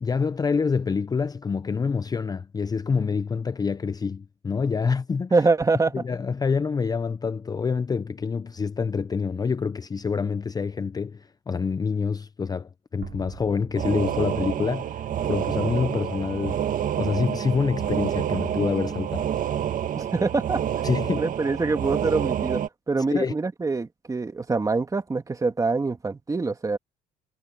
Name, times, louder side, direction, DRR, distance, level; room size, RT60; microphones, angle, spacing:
voice 1, 0.0-5.3 5.9-16.6 17.0-19.3 20.8-21.3 23.1-23.3, left 5 dB, 20° left, 0.6 m, -26 dB
voice 2, 5.3-6.0 20.0-20.6 21.2-22.6 22.9-26.8, right 3 dB, 20° right, 2.3 m, -25 dB
sound 1, 13.0-15.4, right 13 dB, 75° right, 6.5 m, -45 dB
sound 2, 13.7-22.7, right 10 dB, 50° right, 1.8 m, -28 dB
cardioid pair, 110°, 17 cm